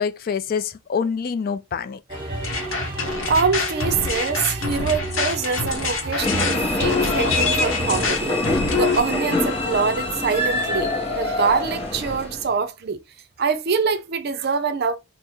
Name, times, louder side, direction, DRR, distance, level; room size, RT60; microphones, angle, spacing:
voice 1, 0.0-2.0, left 6 dB, 45° left, 0.3 m, -26 dB
sound 1, 2.1-8.1, right 2 dB, 25° right, 1.1 m, -31 dB
sound 2, 2.4-9.0, left 4 dB, 75° left, 0.8 m, -25 dB
voice 2, 3.3-8.5 8.7-13.0 13.4-15.0, right 5 dB, 50° right, 0.5 m, -24 dB
sound 3, 6.2-12.5, left 2 dB, 30° left, 0.8 m, -25 dB
3.4 x 2.0 x 4.3 m
head